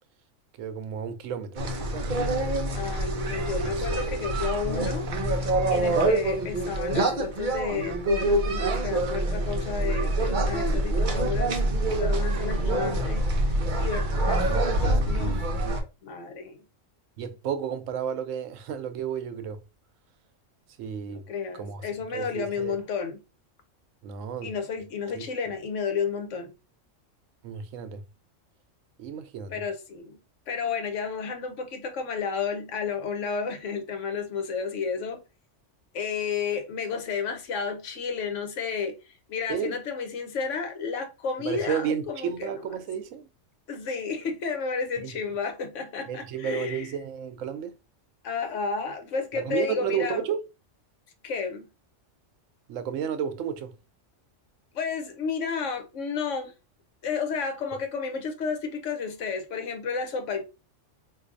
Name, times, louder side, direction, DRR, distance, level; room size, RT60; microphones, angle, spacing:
voice 1, 0.6-1.8 3.6-4.1 14.5-15.8 17.2-19.6 20.8-21.3 21.5-21.8 22.1-22.7 24.0-24.5 25.1-25.2 27.4-28.0 29.0-29.6 39.5-39.8 41.4-43.3 45.0-45.2 46.1-47.8 49.3-50.4 52.7-53.7, right 8 dB, 85° right, 1.0 m, -32 dB
sound 1, 1.6-15.8, right 1 dB, 50° right, 0.7 m, -26 dB
voice 2, 2.7-5.1 5.7-15.6 16.0-16.6 21.1-23.2 24.4-26.5 29.5-30.2 30.5-35.2 35.9-42.5 43.7-46.9 48.2-50.2 51.2-51.7 54.7-56.5 57.0-60.4, left 5 dB, 75° left, 1.1 m, -32 dB
4.0 x 2.6 x 2.5 m
omnidirectional pair, 1.3 m